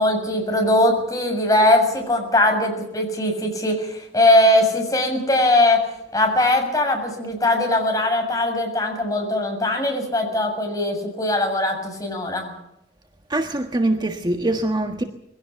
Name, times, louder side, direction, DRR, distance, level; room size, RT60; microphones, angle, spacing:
voice 1, 0.0-12.5, left 1 dB, 20° left, 3 dB, 7.2 m, -20 dB
voice 2, 13.3-15.0, right 1 dB, 25° right, 5 dB, 1.5 m, -23 dB
22.5 x 17.0 x 7.0 m, 0.83 s
head